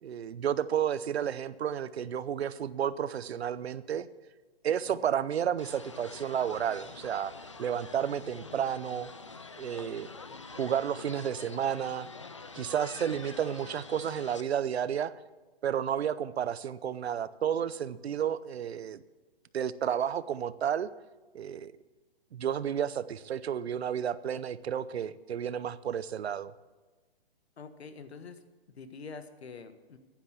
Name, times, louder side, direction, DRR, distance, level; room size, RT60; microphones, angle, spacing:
voice 1, 0.0-4.1 4.6-7.3 7.6-9.1 9.6-10.1 10.5-12.1 12.5-15.1 15.6-19.0 19.5-20.9 21.3-21.7 22.3-26.5, right 9 dB, 85° right, 16 dB, 0.7 m, -31 dB
sound 1, 5.6-14.4, left 4 dB, 30° left, 0.4 m, -46 dB
voice 2, 27.6-28.4 28.8-30.0, left 4 dB, 85° left, 10 dB, 1.4 m, -45 dB
10.5 x 10.0 x 7.2 m, 1.3 s
hypercardioid pair, 180°, 31 cm